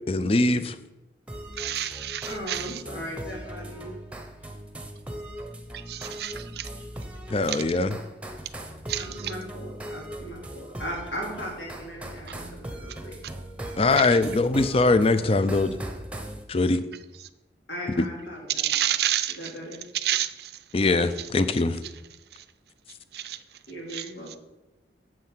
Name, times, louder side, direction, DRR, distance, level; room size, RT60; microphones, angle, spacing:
voice 1, 0.1-0.8 7.3-8.0 13.8-15.8 16.5-16.8 18.0-18.1 20.7-21.8, left 3 dB, 35° left, 13 dB, 0.5 m, -22 dB
sound 1, 1.3-16.4, right 1 dB, 5° right, 0.9 m, -39 dB
voice 2, 1.6-2.6 5.9-6.3 8.9-9.1 18.6-19.3 20.0-20.3 23.1-23.4 23.9-24.0, right 12 dB, 60° right, 13 dB, 0.5 m, -27 dB
voice 3, 2.3-4.0 8.9-13.1 13.7-13.8 17.7-18.8 19.3-19.8 23.2-23.4 23.7-24.4, equal, 85° left, -2 dB, 3.4 m, -38 dB
7.7 x 7.6 x 5.7 m, 0.97 s
head